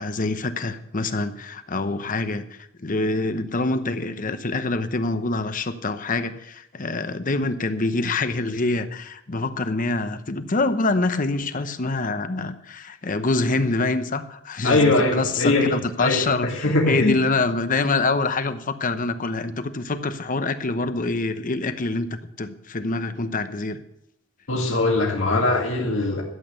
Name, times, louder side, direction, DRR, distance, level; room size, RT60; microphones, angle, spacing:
voice 1, 0.0-23.8, left 3 dB, 40° left, 10 dB, 0.8 m, -25 dB
voice 2, 14.6-16.2 16.6-17.2 24.5-26.2, left 2 dB, 75° left, -1 dB, 2.1 m, -21 dB
13.0 x 8.4 x 6.7 m, 0.82 s
head